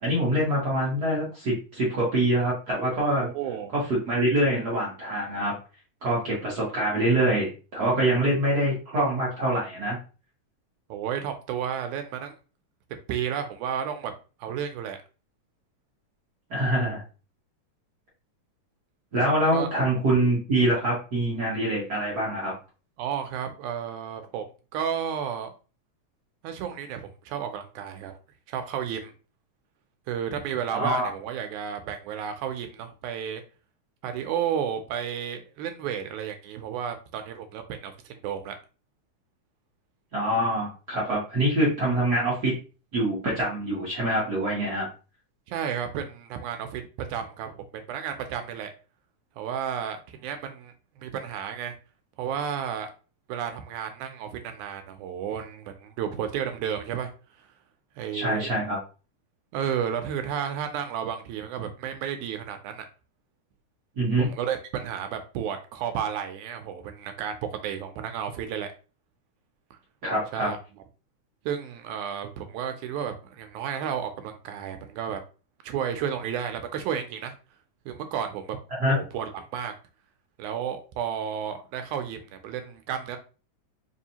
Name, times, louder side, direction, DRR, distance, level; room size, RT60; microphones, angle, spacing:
voice 1, 0.0-3.3 3.7-5.5 6.0-10.0 16.5-17.0 19.1-22.5 30.7-31.1 40.1-42.5 42.9-44.9 58.1-58.8 64.0-64.3 70.0-70.5 78.8-78.9, right 1 dB, 65° right, -5 dB, 0.9 m, -25 dB
voice 2, 3.1-3.7 10.9-12.3 13.1-14.1 14.4-15.0 19.5-19.7 23.0-24.5 24.7-25.5 26.4-28.2 28.5-29.1 30.1-33.4 34.0-38.6 45.5-48.7 49.4-51.8 52.2-52.9 53.3-57.1 58.0-58.5 59.5-62.9 64.2-68.7 69.7-69.8 70.3-70.6 71.5-75.2 75.6-77.3 77.9-78.6 78.9-79.7 80.4-83.2, right 8 dB, 80° right, 7 dB, 2.0 m, -32 dB
4.8 x 2.7 x 2.8 m, 0.33 s
omnidirectional pair, 3.5 m